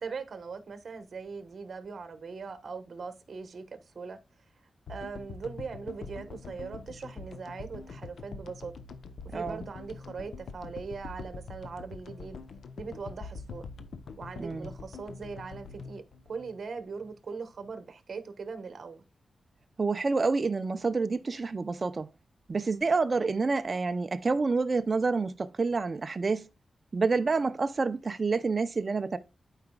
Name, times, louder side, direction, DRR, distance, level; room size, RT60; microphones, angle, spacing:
voice 1, 0.0-4.2 4.9-8.7 9.2-12.4 12.8-13.7 14.2-19.0, right 5 dB, 60° right, 1.2 m, -40 dB
sound 1, 4.9-17.2, left 4 dB, 85° left, 0.7 m, -44 dB
voice 2, 19.8-22.1 22.5-26.5 26.9-29.2, right 4 dB, 40° right, 0.6 m, -28 dB
12.0 x 4.9 x 2.3 m
wide cardioid pair, 100°, 0 cm